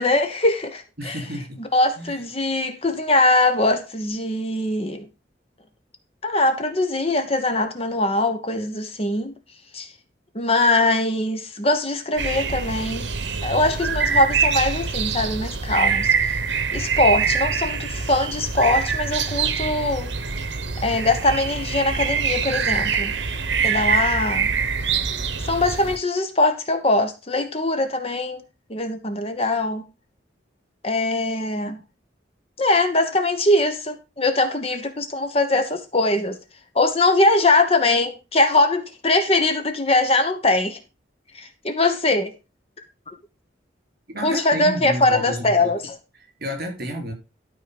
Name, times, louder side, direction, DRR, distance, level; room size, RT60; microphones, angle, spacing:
voice 1, 0.0-1.1 1.7-5.1 6.2-9.3 9.7-9.9 10.3-13.1 13.4-16.4 16.7-20.1 20.8-23.1 23.6-24.5 25.4-28.4 28.7-29.9 30.8-31.8 32.6-36.4 36.7-40.8 41.3-42.3 44.2-45.9, left 2 dB, 30° left, 1.1 m, -21 dB
voice 2, 1.0-1.6 2.0-2.2 44.1-45.8 46.1-47.1, equal, 50° right, 4.1 m, -31 dB
sound 1, 12.2-26.0, right 6 dB, 70° right, 1.0 m, -24 dB
12.5 x 4.5 x 5.2 m
head